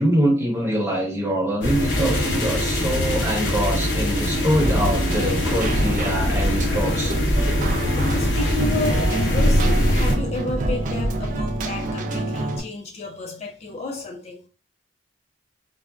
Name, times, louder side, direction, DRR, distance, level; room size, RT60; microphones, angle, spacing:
voice 1, 0.0-7.1, equal, 15° right, 1.0 m, -24 dB
sound 1, 1.6-10.1, left 1 dB, 85° left, 0.9 m, -22 dB
Keyboard (musical), 4.6-12.6, right 1 dB, 45° right, 0.4 m, -28 dB
Run, 5.7-10.2, equal, 70° right, 0.9 m, -33 dB
voice 2, 7.7-14.4, left 2 dB, 35° left, 0.3 m, -31 dB
3.9 x 2.2 x 2.3 m
head